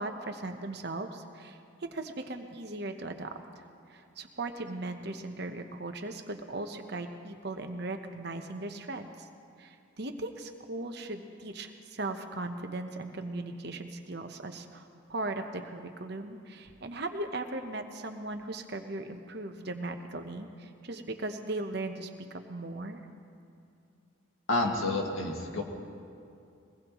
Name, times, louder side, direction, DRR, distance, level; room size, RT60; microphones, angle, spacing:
voice 1, 0.0-3.4 3.9-9.3 9.6-23.1, right 2 dB, 50° right, 5 dB, 1.0 m, -38 dB
voice 2, 24.5-25.6, left 2 dB, 80° left, 0 dB, 2.1 m, -29 dB
22.5 x 19.5 x 3.1 m, 2.5 s
head